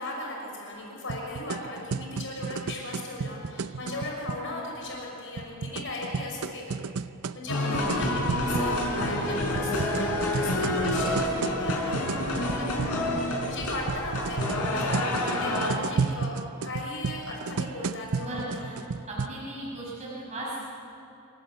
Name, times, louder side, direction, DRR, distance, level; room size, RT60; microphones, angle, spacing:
voice 1, 0.0-6.8 7.3-16.4 16.6-18.3 18.6-18.7, left 2 dB, 60° left, -1 dB, 5.8 m, -37 dB
sound 1, 1.1-4.4 5.4-8.7 9.6-13.0 13.9-19.3, right 5 dB, 75° right, 0.6 m, -33 dB
sound 2, 7.5-15.7, left 1 dB, 90° left, 4.8 m, -28 dB
voice 2, 7.5-8.1 17.8-18.8 19.1-20.6, right 1 dB, 30° right, -6 dB, 5.7 m, -37 dB
28.0 x 18.0 x 8.1 m, 2.8 s
head